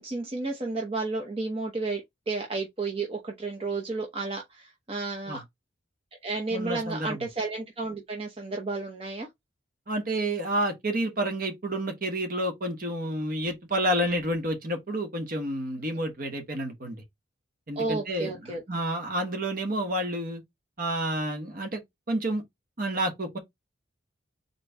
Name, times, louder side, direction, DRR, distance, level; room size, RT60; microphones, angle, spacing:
voice 1, 0.0-5.4 6.2-9.3 17.8-18.6, right 3 dB, 30° right, 0.8 m, -32 dB
voice 2, 6.5-7.3 9.9-17.0 17.7-20.4 20.8-21.8 22.1-22.4 22.8-23.4, right 1 dB, 45° right, 1.2 m, -29 dB
4.1 x 3.0 x 3.4 m
head